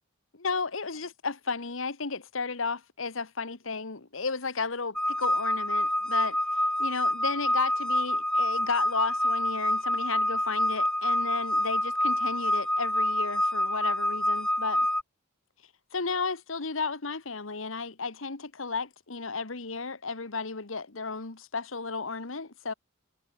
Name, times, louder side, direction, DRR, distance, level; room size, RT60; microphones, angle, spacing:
voice 1, 0.3-6.4 6.8-14.9 15.9-22.7, left 4 dB, 75° left, 1.5 m, -33 dB
sound 1, 5.0-15.0, left 1 dB, 5° left, 1.1 m, -27 dB
head